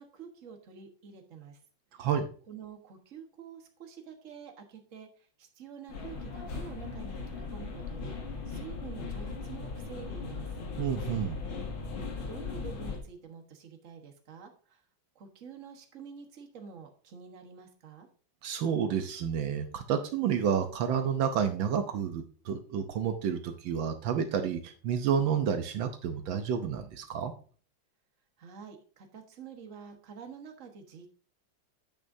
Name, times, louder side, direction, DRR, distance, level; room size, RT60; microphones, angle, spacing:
voice 1, 0.0-1.6 2.5-10.5 12.3-14.8 15.1-18.1 28.4-31.1, right 6 dB, 45° right, 4 dB, 1.5 m, -48 dB
sound 1, 5.9-13.0, left 4 dB, 85° left, 2.5 m, -38 dB
voice 2, 10.8-11.4 18.4-27.3, right 7 dB, 75° right, 7 dB, 1.6 m, -30 dB
9.1 x 8.7 x 2.7 m, 0.42 s
omnidirectional pair, 2.2 m